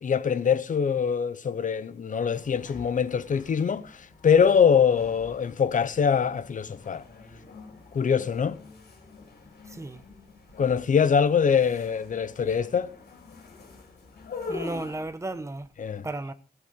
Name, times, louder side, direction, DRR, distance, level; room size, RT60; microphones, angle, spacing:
voice 1, 0.0-3.9 4.2-7.0 7.9-8.6 10.6-12.9 15.8-16.1, left 7 dB, 50° left, 0.8 m, -23 dB
sound 1, 2.3-15.1, left 4 dB, 85° left, 4.5 m, -45 dB
voice 2, 9.7-10.0 14.5-15.7 16.0-16.3, right 2 dB, 15° right, 0.9 m, -34 dB
16.5 x 8.2 x 5.2 m
wide cardioid pair, 160°, 17 cm